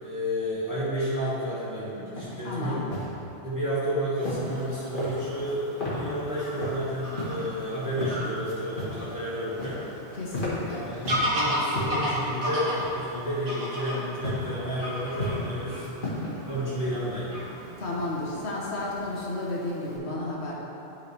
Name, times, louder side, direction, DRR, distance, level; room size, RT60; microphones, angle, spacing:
voice 1, 0.0-2.8 3.4-9.8 10.7-15.9 16.5-17.3, equal, 15° right, -12 dB, 1.5 m, -31 dB
sound 1, 2.2-2.3 2.7-3.1 4.2-4.6 4.9-5.5 5.8-6.0 6.4-6.7 7.1-7.4 7.8-8.1 8.4-9.1 9.3-9.9 10.2-11.3 11.7-12.1 12.8-13.2 14.2-14.5 14.9-15.5 15.8-16.3, left 1 dB, 50° left, 1.8 m, -34 dB
voice 2, 2.4-2.8 10.2-10.9 17.8-20.5, left 2 dB, 75° left, -4 dB, 1.5 m, -32 dB
Fowl / Bird vocalization bird call bird song, 4.2-20.0, equal, 55° right, 1.4 m, -35 dB
11.0 x 4.6 x 3.3 m, 3.0 s
omnidirectional pair, 1.1 m